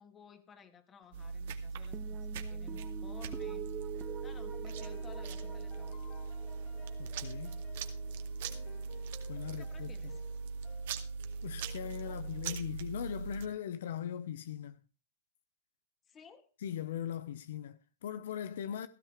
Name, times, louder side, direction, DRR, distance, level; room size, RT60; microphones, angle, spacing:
voice 1, 0.0-4.0 4.2-6.0 9.5-10.2 12.1-12.2 16.1-16.5, left 6 dB, 20° left, 2.5 m, -57 dB
sound 1, 1.1-13.4, right 4 dB, 60° right, 2.3 m, -40 dB
sound 2, 1.9-8.5, right 9 dB, 20° right, 1.4 m, -47 dB
sound 3, 3.9-12.6, left 9 dB, 40° left, 4.2 m, -57 dB
voice 2, 7.0-7.6 9.3-9.9 11.4-14.8 16.6-18.9, left 9 dB, 65° left, 0.9 m, -40 dB
17.0 x 13.5 x 3.3 m
hypercardioid pair, 130°, 0 cm